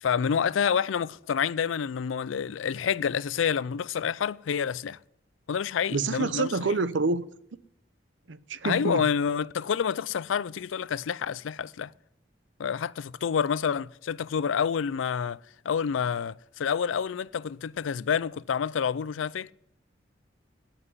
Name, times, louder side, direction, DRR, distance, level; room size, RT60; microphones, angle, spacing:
voice 1, 0.0-5.0 5.5-6.5 8.6-11.9 12.6-15.4 15.6-19.5, left 7 dB, 85° left, 0.4 m, -28 dB
voice 2, 5.9-7.2 8.3-9.1, right 3 dB, 70° right, 0.7 m, -27 dB
17.5 x 5.9 x 9.6 m
head